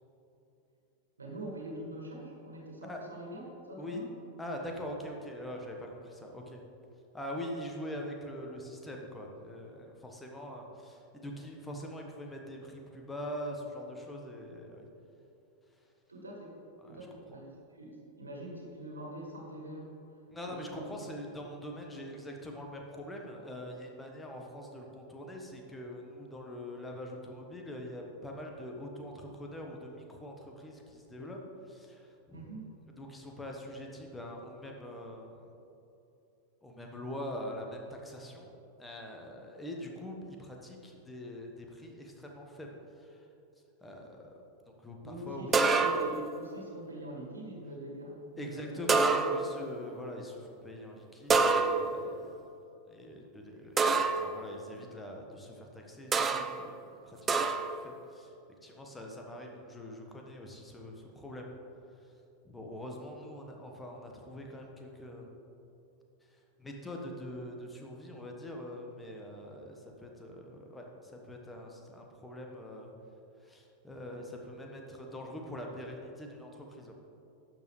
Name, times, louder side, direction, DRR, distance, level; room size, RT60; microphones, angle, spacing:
voice 1, 1.2-4.1 16.1-16.5 16.9-19.9 20.4-20.9 32.3-32.7 45.0-49.0 49.3-49.4, right 1 dB, 75° right, -1 dB, 2.0 m, -44 dB
voice 2, 2.8-3.2 3.8-4.0 4.4-6.6 7.1-14.9 16.8-17.4 20.3-31.4 31.7-32.5 33.0-35.5 36.6-38.5 38.8-42.7 43.0-43.2 43.8-44.4 44.7-45.5 48.4-52.3 52.9-58.3 58.6-61.5 62.4-65.3 66.3-72.9 73.4-76.9, left 1 dB, 10° left, 1 dB, 1.4 m, -43 dB
sound 1, 45.5-46.3 48.9-49.6 51.3-52.1 53.8-54.3 56.1-56.6 57.3-57.8, right 4 dB, 20° right, 0.5 m, -26 dB
12.0 x 7.6 x 3.3 m, 2.9 s
figure-of-eight pair, 90°, 0 cm